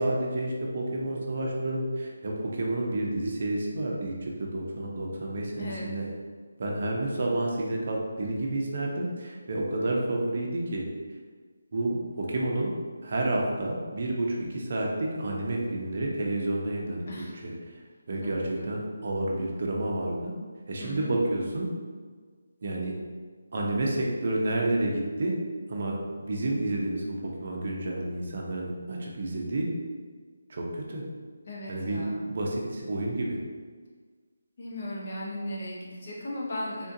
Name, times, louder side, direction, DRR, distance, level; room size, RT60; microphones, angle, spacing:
voice 1, 0.0-6.0 6.6-10.9 11.7-12.7 13.0-17.5 18.1-20.3 20.7-21.7 22.6-22.9 23.5-25.4 25.7-29.7 30.5-31.0 31.7-33.4, right 1 dB, 45° right, -1 dB, 0.6 m, -30 dB
voice 2, 5.6-6.0 17.1-17.4 18.2-18.7 20.8-21.1 31.5-32.3 34.6-36.9, left 1 dB, 45° left, -4 dB, 0.8 m, -37 dB
3.6 x 2.4 x 2.7 m, 1.5 s
figure-of-eight pair, 170°, 0 cm